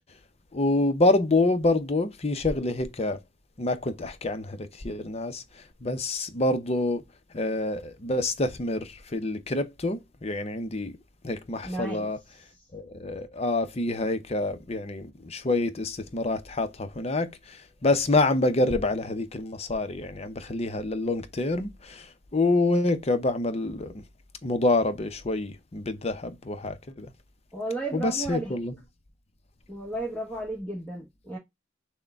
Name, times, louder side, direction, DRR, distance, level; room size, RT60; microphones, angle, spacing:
voice 1, 0.5-3.2 3.6-5.4 5.8-7.0 7.3-10.9 11.2-12.2 12.7-23.9 24.4-27.1 27.9-28.7, left 2 dB, 35° left, 0.7 m, -27 dB
voice 2, 11.6-12.7 27.5-28.6 29.7-31.4, right 2 dB, 5° left, 1.1 m, -34 dB
6.3 x 2.2 x 3.5 m
head